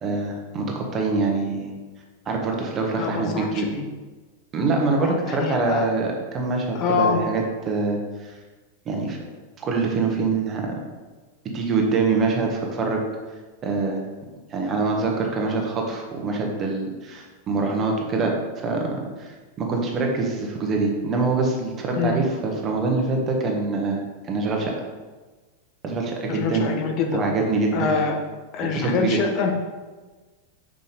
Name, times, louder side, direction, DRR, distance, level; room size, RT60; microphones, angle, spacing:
voice 1, 0.0-1.7 2.3-3.7 4.5-8.3 8.8-9.2 9.6-10.8 11.5-13.0 13.6-14.0 14.5-18.9 19.2-24.7 25.8-26.7 27.1-27.9 28.6-29.2, right 3 dB, 30° right, 1 dB, 1.2 m, -24 dB
voice 2, 3.0-3.8 5.0-5.9 6.7-7.2 22.0-22.2 26.3-27.2 27.7-28.2 28.5-29.5, left 5 dB, 40° left, 3 dB, 0.7 m, -25 dB
5.5 x 5.0 x 4.0 m, 1.3 s
figure-of-eight pair, 90°, 0 cm